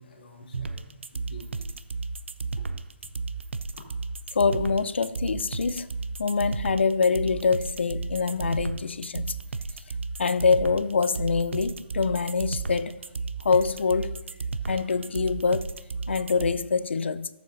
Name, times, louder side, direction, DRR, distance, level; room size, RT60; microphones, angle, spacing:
voice 1, 0.0-1.7 2.6-2.7 3.0-3.7, left 2 dB, 45° left, 2.2 m, -50 dB
sound 1, 0.5-16.5, right 4 dB, 85° right, 0.6 m, -33 dB
voice 2, 4.3-5.9 6.2-9.4 10.2-13.0 13.4-14.2 14.7-15.7 16.1-17.3, left 5 dB, 70° left, 0.5 m, -25 dB
14.5 x 7.1 x 2.6 m
hypercardioid pair, 175°, 6 cm